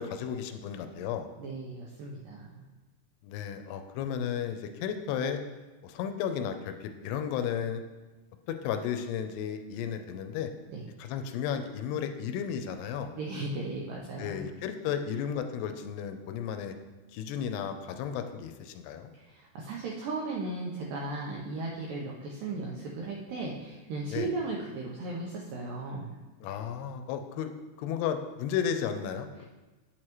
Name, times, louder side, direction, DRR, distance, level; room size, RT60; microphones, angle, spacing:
voice 1, 0.0-1.3 3.2-5.4 5.8-7.8 8.5-10.5 11.0-13.1 14.2-16.7 17.1-19.1 24.1-24.3 26.4-27.5 27.8-29.4, left 8 dB, 85° left, 7 dB, 2.5 m, -33 dB
voice 2, 1.4-2.6 10.7-10.9 13.1-14.5 19.1-26.2 29.4-29.5, right 3 dB, 90° right, -3 dB, 1.9 m, -36 dB
9.2 x 6.3 x 3.0 m, 1.2 s
omnidirectional pair, 4.8 m